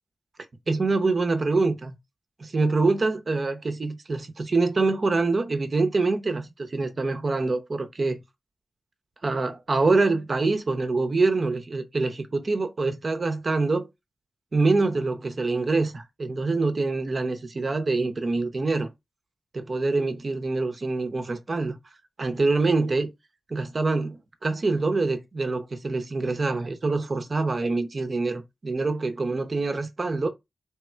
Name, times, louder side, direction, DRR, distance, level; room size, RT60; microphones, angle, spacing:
voice 1, 0.7-1.9 2.4-8.2 9.2-13.9 14.5-18.9 19.5-21.8 22.2-23.1 23.5-30.3, right 3 dB, 50° right, 0.8 m, -25 dB
3.5 x 2.4 x 4.4 m
cardioid pair, 65°, 0 cm